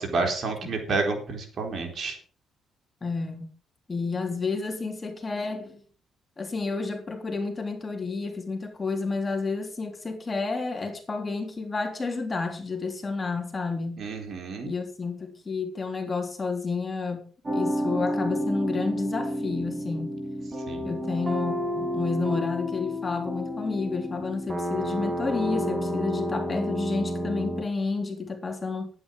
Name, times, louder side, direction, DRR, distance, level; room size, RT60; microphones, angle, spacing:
voice 1, 0.0-2.2 14.0-14.7 20.7-20.9, right 3 dB, 55° right, 3.9 m, -29 dB
voice 2, 3.0-3.5 3.9-5.8 6.4-14.0 14.6-17.2 17.5-20.2 20.8-28.9, left 4 dB, 30° left, 3.2 m, -30 dB
sound 1, 17.4-27.6, equal, 20° right, 5.2 m, -30 dB
11.5 x 9.6 x 5.3 m
cardioid pair, 90°, 0 cm